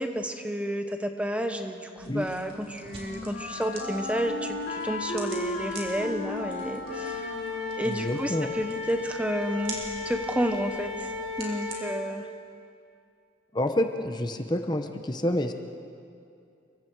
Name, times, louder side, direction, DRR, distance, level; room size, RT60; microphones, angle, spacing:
voice 1, 0.0-7.3 7.8-9.8 10.0-11.1 11.4-12.3, equal, 5° right, 6 dB, 0.9 m, -31 dB
Wind instrument woodwind instrument, 2.0-8.8, left 2 dB, 90° left, 3.9 m, -36 dB
sound 1, 2.0-11.8, right 2 dB, 30° right, 3.7 m, -46 dB
Wind instrument woodwind instrument 2, 6.9-12.0, left 4 dB, 70° right, 2.8 m, -35 dB
voice 2, 7.8-8.5 13.5-15.5, left 1 dB, 20° left, 6 dB, 0.9 m, -28 dB
30.0 x 23.5 x 4.7 m, 2.5 s
head